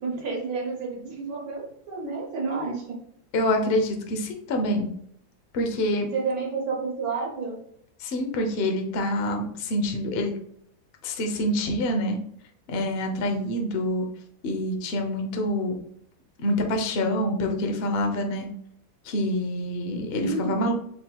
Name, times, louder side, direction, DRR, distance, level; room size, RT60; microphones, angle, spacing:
voice 1, 0.0-2.9 6.1-7.6 20.2-20.6, right 4 dB, 55° right, -1 dB, 1.5 m, -30 dB
voice 2, 3.3-4.9 5.5-6.1 8.0-10.3 11.0-12.2 12.7-14.1 14.4-15.8 16.4-18.5 19.0-20.7, left 1 dB, 90° left, 3 dB, 0.5 m, -26 dB
7.5 x 2.9 x 2.2 m, 0.70 s
omnidirectional pair, 2.1 m